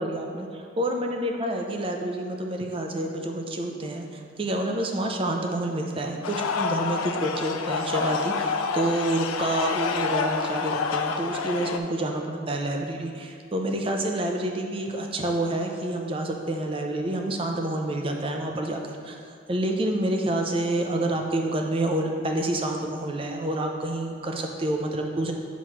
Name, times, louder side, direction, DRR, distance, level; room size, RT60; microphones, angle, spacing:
voice 1, 0.0-19.2 19.5-25.3, right 1 dB, 25° right, 2 dB, 0.5 m, -28 dB
sound 1, 6.2-11.8, left 5 dB, 90° left, 0.4 m, -28 dB
8.1 x 3.1 x 5.8 m, 2.3 s
head